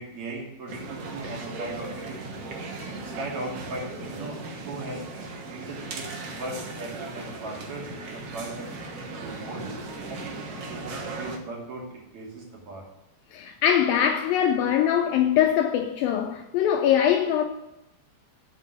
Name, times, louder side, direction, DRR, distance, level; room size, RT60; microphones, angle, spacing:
voice 1, 0.0-2.2 3.0-4.4 4.7-5.3 5.5-6.1 6.4-8.7 9.1-9.6 10.1-12.8, right 2 dB, 45° right, 3.8 m, -38 dB
sound 1, 0.7-11.4, right 3 dB, 75° right, 1.4 m, -37 dB
voice 2, 13.3-17.4, left 9 dB, 85° left, 2.1 m, -22 dB
7.8 x 7.3 x 8.3 m
omnidirectional pair, 4.8 m